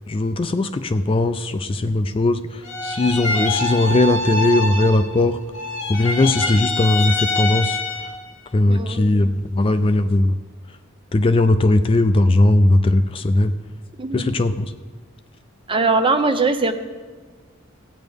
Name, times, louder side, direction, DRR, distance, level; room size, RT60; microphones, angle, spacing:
voice 1, 0.1-5.4 5.9-7.8 8.5-10.4 11.1-13.5 14.1-14.7, left 2 dB, 25° left, 9 dB, 0.3 m, -18 dB
sound 1, 2.6-5.3 5.5-8.3, left 2 dB, 70° left, 1.5 m, -25 dB
voice 2, 8.7-9.2 14.0-14.3 15.7-16.7, right 3 dB, 25° right, 7 dB, 0.7 m, -21 dB
16.0 x 9.2 x 3.5 m, 1.4 s
head